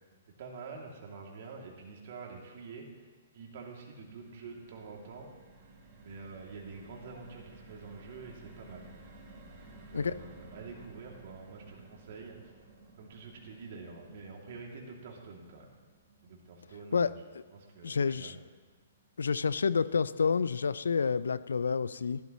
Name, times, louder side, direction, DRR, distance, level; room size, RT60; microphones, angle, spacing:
voice 1, 0.4-3.1 3.3-5.3 6.0-8.9 9.7-12.4 13.0-15.8 16.2-17.1 17.5-18.4, right 4 dB, 55° right, 0 dB, 2.5 m, -47 dB
sound 1, 3.5-19.8 20.2-20.3 20.6-20.8, right 2 dB, 35° right, 2.9 m, -56 dB
voice 2, 17.8-18.3 19.2-22.2, left 5 dB, 75° left, 17 dB, 0.4 m, -29 dB
15.0 x 12.0 x 3.1 m, 1.4 s
hypercardioid pair, 125°, 0 cm